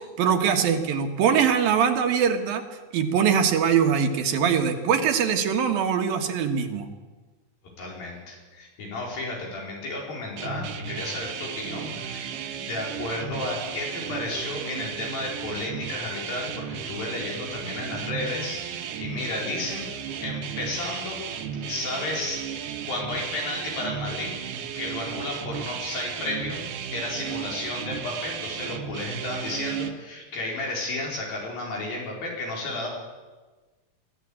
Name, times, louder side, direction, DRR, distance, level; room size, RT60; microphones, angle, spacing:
voice 1, 0.2-2.6 2.9-6.9, right 7 dB, 85° right, 5 dB, 3.4 m, -22 dB
voice 2, 7.8-12.3 12.6-21.2 21.7-22.4 22.9-24.3 24.8-26.6 26.9-32.9, left 2 dB, 85° left, -1 dB, 6.5 m, -33 dB
sound 1, 10.4-29.9, right 8 dB, 70° right, 2.7 m, -34 dB
22.0 x 15.0 x 8.7 m, 1.3 s
omnidirectional pair, 4.0 m